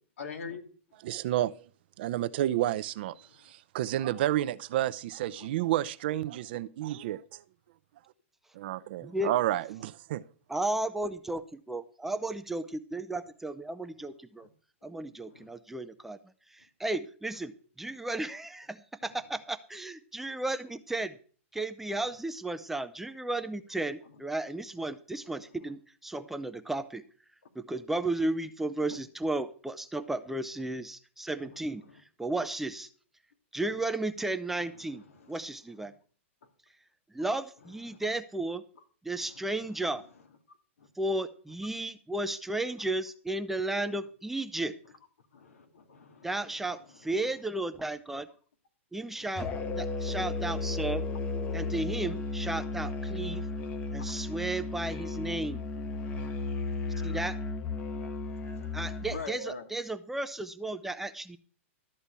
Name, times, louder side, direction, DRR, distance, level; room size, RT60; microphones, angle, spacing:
voice 1, 0.2-0.6 3.2-3.5 5.4-5.5 12.0-12.1 14.0-14.1 14.4-14.5 15.3-15.5 24.0-24.2 25.4-25.7 31.4-32.0 33.7-33.8 34.6-35.4 35.8-35.9 37.6-38.0 39.1-40.1 40.8-40.9 42.8-42.9 43.9-44.0 45.3-47.3 49.2-49.5 50.1-50.3 51.5-51.7 53.4-53.8 55.7-57.2 57.8-59.7, left 4 dB, 90° left, 2.5 m, -48 dB
voice 2, 1.0-1.7 2.0-7.4 8.5-10.2, right 13 dB, 50° right, 0.6 m, -30 dB
voice 3, 10.5-14.5 14.8-16.2 16.5-17.5 17.8-21.1 21.5-27.0 27.6-31.8 32.2-32.9 33.5-35.9 37.1-38.6 39.0-40.0 41.0-44.7 46.2-48.3 48.9-49.5 49.8-51.0 51.5-53.4 53.9-55.7 57.0-57.4 58.7-61.4, right 2 dB, 5° right, 0.5 m, -34 dB
Musical instrument, 49.4-59.2, left 3 dB, 20° left, 1.0 m, -34 dB
13.0 x 4.3 x 8.3 m
hypercardioid pair, 160°, 7 cm